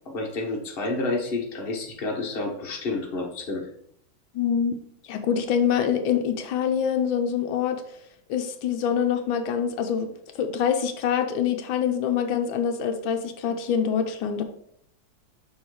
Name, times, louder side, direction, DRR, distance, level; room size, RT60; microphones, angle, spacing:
voice 1, 0.1-3.7, left 3 dB, 35° left, 0 dB, 1.2 m, -29 dB
voice 2, 4.3-4.7 5.1-7.8 8.3-10.1 10.3-14.4, left 8 dB, 90° left, 6 dB, 1.5 m, -25 dB
6.4 x 3.4 x 4.7 m, 0.71 s
omnidirectional pair, 2.1 m